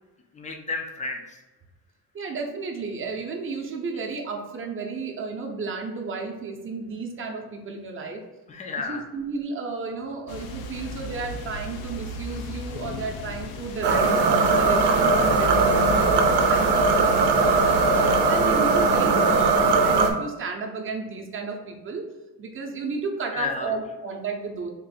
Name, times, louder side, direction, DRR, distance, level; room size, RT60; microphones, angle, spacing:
voice 1, 0.3-1.4 8.5-9.1 23.3-23.7, left 4 dB, 20° left, 3 dB, 0.4 m, -32 dB
voice 2, 2.1-8.2 8.9-17.8 18.2-22.1 22.4-24.7, right 4 dB, 30° right, 1 dB, 0.7 m, -33 dB
sound 1, 10.3-18.4, left 2 dB, 65° left, 0.6 m, -36 dB
sound 2, 13.8-20.1, right 3 dB, 75° right, 0.7 m, -20 dB
3.7 x 2.5 x 4.1 m, 1.1 s
cardioid pair, 145°, 40 cm